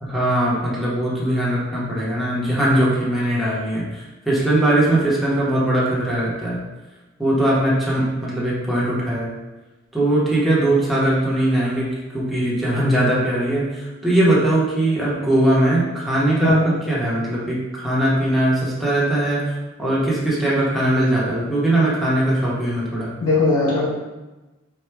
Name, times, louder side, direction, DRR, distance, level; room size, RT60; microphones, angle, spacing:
voice 1, 0.0-6.6 7.2-9.3 9.9-11.9 12.1-16.6 16.9-23.1, right 1 dB, ahead, -8 dB, 0.8 m, -20 dB
voice 2, 16.4-16.8 23.2-23.9, left 2 dB, 90° left, -8 dB, 0.8 m, -19 dB
4.5 x 2.2 x 3.3 m, 1.1 s
head